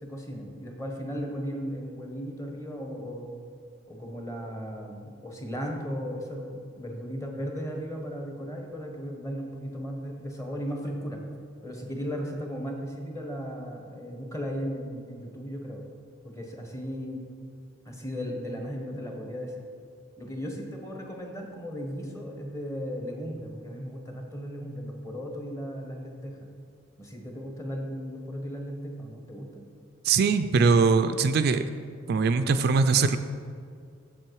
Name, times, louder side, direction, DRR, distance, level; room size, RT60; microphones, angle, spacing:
voice 1, 0.0-3.3 3.9-11.2 11.6-15.8 16.2-17.3 17.8-19.6 20.2-26.5 27.0-29.7, equal, 15° left, 1 dB, 1.1 m, -36 dB
voice 2, 30.0-31.6 32.1-33.2, right 5 dB, 55° right, 10 dB, 0.3 m, -21 dB
7.5 x 7.4 x 4.7 m, 2.3 s
head